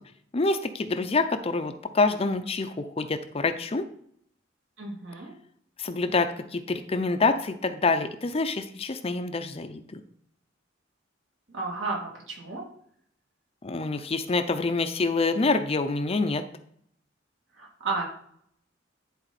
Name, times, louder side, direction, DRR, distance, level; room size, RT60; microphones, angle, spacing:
voice 1, 0.3-3.9 5.8-10.0 13.6-16.4, left 3 dB, 30° left, 9 dB, 0.5 m, -26 dB
voice 2, 4.8-5.3 11.5-12.6 17.5-18.0, right 3 dB, 70° right, -2 dB, 2.5 m, -32 dB
10.5 x 4.2 x 4.1 m, 0.67 s
head